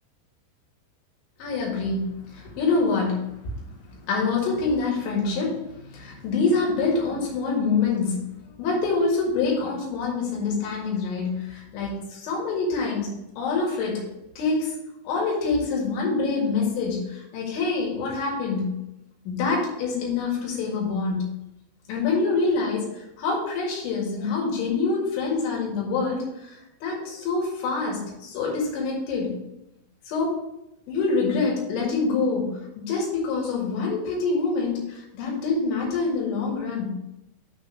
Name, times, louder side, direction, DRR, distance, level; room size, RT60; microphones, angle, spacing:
voice 1, 1.4-8.3 8.6-14.0 14.4-14.8 15.1-18.8 19.3-21.3 21.9-29.4 30.1-30.4 30.9-37.1, left 4 dB, 80° left, -3 dB, 4.2 m, -26 dB
7.9 x 3.8 x 5.5 m, 0.88 s
omnidirectional pair, 5.4 m